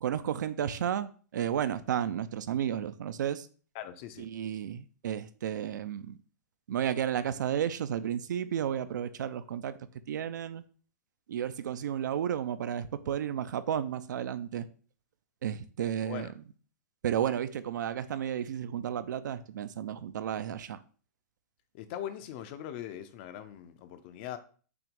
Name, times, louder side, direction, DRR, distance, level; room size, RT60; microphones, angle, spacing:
voice 1, 0.0-3.5 4.2-6.2 6.7-9.8 10.1-10.6 11.3-14.7 15.4-16.4 17.0-20.8, right 9 dB, 75° right, 0.5 m, -32 dB
voice 2, 3.7-4.3 16.1-16.3 21.7-24.4, left 11 dB, 35° left, 0.5 m, -41 dB
5.9 x 3.0 x 5.1 m
hypercardioid pair, 165°, 10 cm